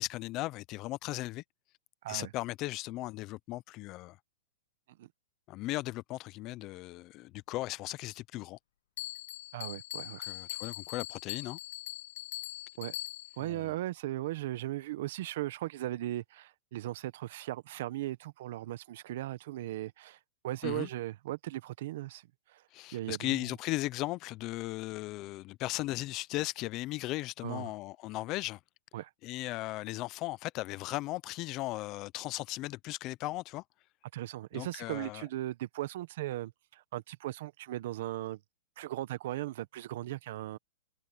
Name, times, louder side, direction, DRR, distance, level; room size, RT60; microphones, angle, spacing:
voice 1, 0.0-1.4 2.1-4.2 5.5-8.6 10.2-11.6 13.4-13.8 20.6-20.9 22.7-28.6 29.2-33.6 34.5-35.2, left 18 dB, 30° left, 0.4 m, -37 dB
Bell, 9.0-13.5, left 16 dB, 55° left, 1.3 m, -41 dB
voice 2, 9.5-10.3 12.8-13.0 13.4-20.2 20.4-22.6 22.9-23.4 27.4-27.7 28.9-29.1 34.1-38.4 38.8-40.6, right 15 dB, 50° right, 1.1 m, -38 dB
hypercardioid pair, 160°, 0 cm